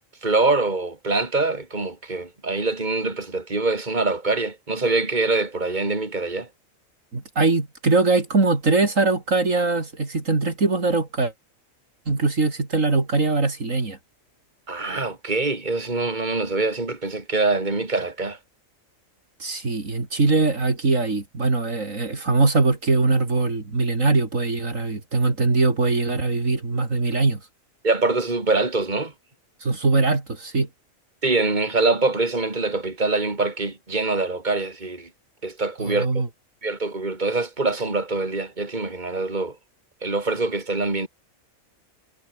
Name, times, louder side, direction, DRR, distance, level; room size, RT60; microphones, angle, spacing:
voice 1, 0.2-6.5 14.7-18.4 27.8-29.1 31.2-35.1 35.4-36.1 36.6-39.6 40.0-41.1, right 3 dB, 35° right, 3.5 m, -24 dB
voice 2, 7.1-11.3 12.1-14.0 19.4-27.4 29.6-30.7 35.8-36.3, right 3 dB, 70° right, 3.7 m, -22 dB
omnidirectional pair, 1.4 m